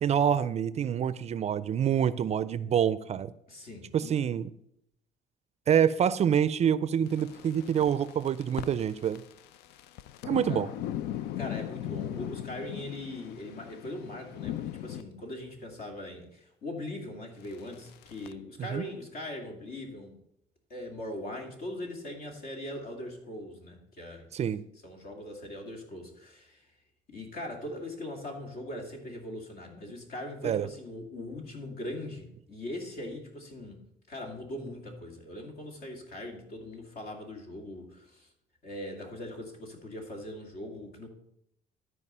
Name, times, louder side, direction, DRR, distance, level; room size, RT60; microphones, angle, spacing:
voice 1, 0.0-3.3 3.9-4.5 5.7-9.2 10.2-10.7 18.7-18.9 24.3-24.6 30.4-30.7, right 8 dB, 40° right, 0.4 m, -26 dB
voice 2, 3.5-4.1 10.5-10.6 11.2-20.1 20.7-24.3 24.8-26.7 27.1-33.8 34.1-38.3 38.6-41.1, left 1 dB, 60° left, 2.5 m, -40 dB
sound 1, 7.1-15.0 17.4-18.3, left 12 dB, 85° left, 0.4 m, -38 dB
12.5 x 4.7 x 5.5 m
cardioid pair, 110°, 17 cm